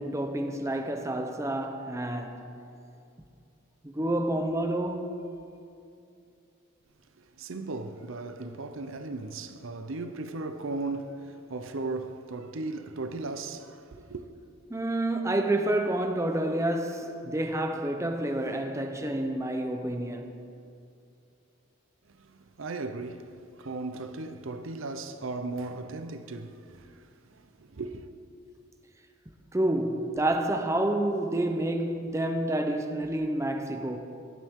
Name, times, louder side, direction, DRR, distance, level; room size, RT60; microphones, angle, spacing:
voice 1, 0.0-2.5 3.8-5.1 14.7-20.4 29.5-34.0, right 1 dB, 15° right, 0.7 m, -29 dB
voice 2, 7.2-14.2 22.1-23.3 23.6-28.1, right 3 dB, 70° right, 0.7 m, -37 dB
18.5 x 12.5 x 3.7 m
head